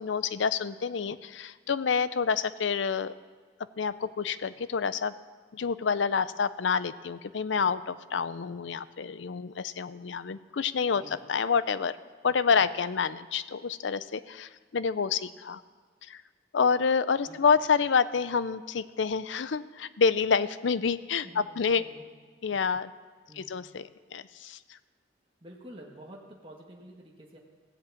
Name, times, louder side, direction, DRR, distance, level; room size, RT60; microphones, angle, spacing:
voice 1, 0.0-3.1 3.8-5.1 5.5-11.0 11.3-12.0 12.2-15.6 16.0-16.2 16.5-21.8 22.4-22.9 23.4-24.8, left 5 dB, 90° left, 15 dB, 0.5 m, -28 dB
voice 2, 10.9-11.3 17.2-17.5 21.2-22.1 23.3-23.6 25.4-27.4, right 1 dB, 30° right, -2 dB, 1.5 m, -49 dB
16.5 x 7.8 x 8.4 m, 1.5 s
head